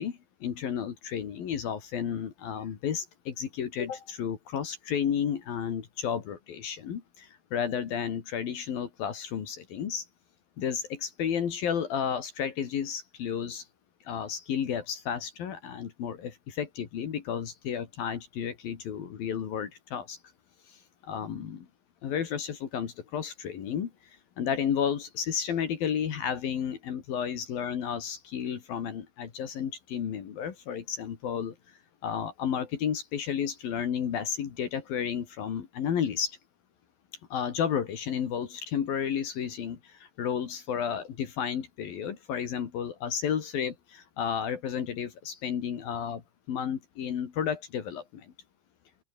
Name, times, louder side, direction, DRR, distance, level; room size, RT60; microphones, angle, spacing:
voice 1, 0.0-10.1 10.6-13.7 14.1-20.2 20.7-21.7 22.0-36.4 37.3-46.2 46.5-48.3, left 8 dB, 65° left, 4.1 m, -32 dB
open air
omnidirectional pair, 4.5 m